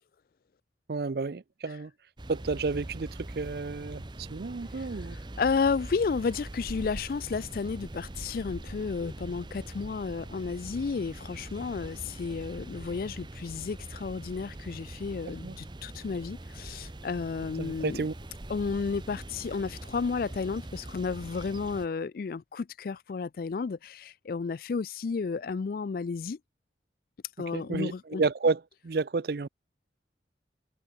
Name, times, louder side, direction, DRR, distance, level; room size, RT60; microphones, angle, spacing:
voice 1, 0.9-1.9 2.3-5.2 15.4-15.6 17.6-18.1 27.5-29.5, right 4 dB, 55° right, 0.5 m, -31 dB
sound 1, 2.2-21.9, right 1 dB, 25° right, 0.7 m, -42 dB
voice 2, 5.4-18.0 18.5-26.4 27.4-28.2, left 5 dB, 50° left, 0.3 m, -32 dB
head